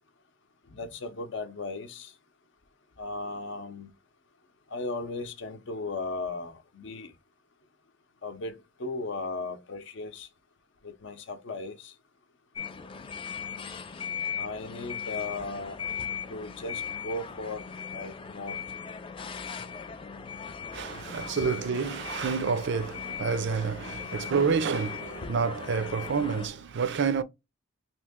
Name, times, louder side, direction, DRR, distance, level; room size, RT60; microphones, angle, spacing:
voice 1, 0.7-2.1 3.0-3.9 4.7-7.1 8.2-10.3 10.8-11.9 14.3-15.9 16.3-17.6 17.9-18.6 25.2-25.3, left 3 dB, 60° left, 0.6 m, -36 dB
sound 1, 12.6-26.5, left 7 dB, 25° left, 0.3 m, -38 dB
voice 2, 20.7-27.2, right 5 dB, 60° right, 0.4 m, -28 dB
3.0 x 2.7 x 3.5 m
head